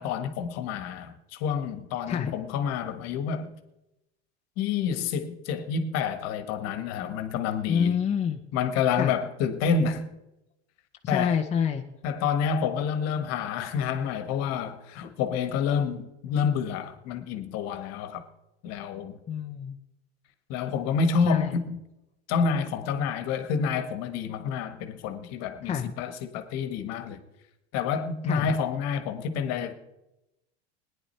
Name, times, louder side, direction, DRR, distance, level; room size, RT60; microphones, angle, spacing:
voice 1, 0.0-3.5 4.6-8.0 8.5-10.1 11.1-11.3 12.0-18.2 18.6-19.2 20.5-21.8 22.3-27.2 27.7-29.7, left 6 dB, 55° left, 1.5 m, -28 dB
voice 2, 7.7-8.4 9.0-9.1 11.0-11.8 19.3-19.8 21.2-21.6 25.6-25.9 28.2-28.5, left 7 dB, 20° left, 0.9 m, -27 dB
18.0 x 10.5 x 4.4 m
hypercardioid pair, 110°, 32 cm